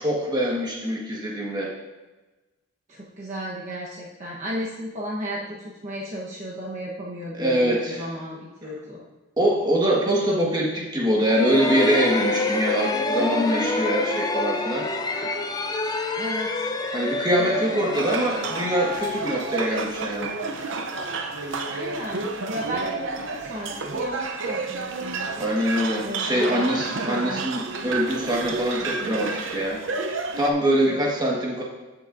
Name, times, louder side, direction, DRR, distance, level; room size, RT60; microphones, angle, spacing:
voice 1, 0.0-1.7 7.3-8.1 9.4-14.9 16.9-20.3 25.4-31.6, equal, 20° right, -3 dB, 1.5 m, -24 dB
voice 2, 2.9-9.0 16.2-16.7 17.0-17.8 21.7-25.3 26.0-26.7 27.0-27.5 30.9-31.1, equal, 35° right, -5 dB, 1.1 m, -34 dB
sound 1, 11.2-19.9, left 2 dB, 20° left, 0.5 m, -27 dB
sound 2, 17.9-30.5, right 4 dB, 65° right, 0.7 m, -31 dB
14.0 x 6.2 x 2.6 m, 1.1 s
head